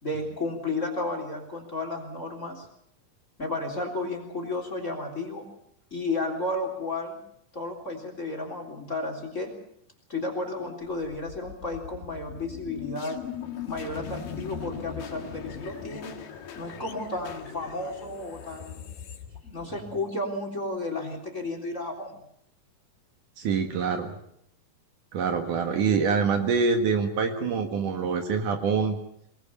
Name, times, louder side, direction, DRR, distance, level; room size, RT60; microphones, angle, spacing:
voice 1, 0.0-2.7 3.4-5.5 5.9-7.2 7.5-9.6 10.1-13.2 13.7-16.2 16.6-18.8 19.4-22.2, left 2 dB, 20° left, 5 dB, 3.6 m, -33 dB
sound 1, 10.8-20.0, left 8 dB, 75° left, 3.5 m, -40 dB
voice 2, 23.4-24.2 25.1-29.0, right 5 dB, 65° right, 5 dB, 3.1 m, -25 dB
24.5 x 19.5 x 7.1 m, 0.74 s
omnidirectional pair, 4.1 m